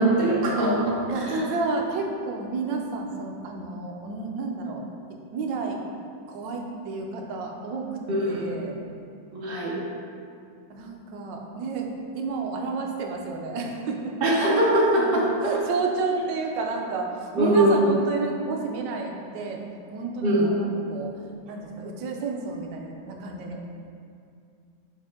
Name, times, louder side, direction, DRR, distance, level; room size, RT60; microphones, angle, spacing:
voice 1, 0.0-1.0 1.3-1.5 8.1-8.5 9.3-9.8 14.2-15.5 17.4-17.9 20.2-20.5, right 1 dB, 50° right, -4 dB, 0.7 m, -22 dB
voice 2, 1.1-4.9 5.3-5.8 6.3-7.9 8.3-8.8 10.7-14.1 15.4-19.6 19.9-20.6 20.9-21.2 21.5-23.7, right 4 dB, 70° right, 1 dB, 1.2 m, -31 dB
5.8 x 4.5 x 3.6 m, 2.4 s
omnidirectional pair, 2.2 m